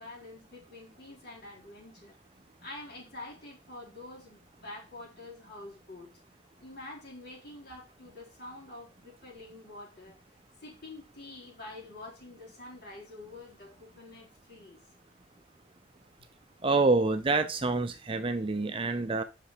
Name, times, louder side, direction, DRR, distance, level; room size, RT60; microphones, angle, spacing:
voice 1, 0.0-2.2 2.6-6.1 6.6-10.2 10.6-14.8, left 2 dB, 55° left, -3 dB, 4.0 m, -47 dB
voice 2, 16.6-19.2, right 3 dB, 25° right, 9 dB, 0.6 m, -27 dB
6.0 x 5.4 x 4.9 m, 0.29 s
head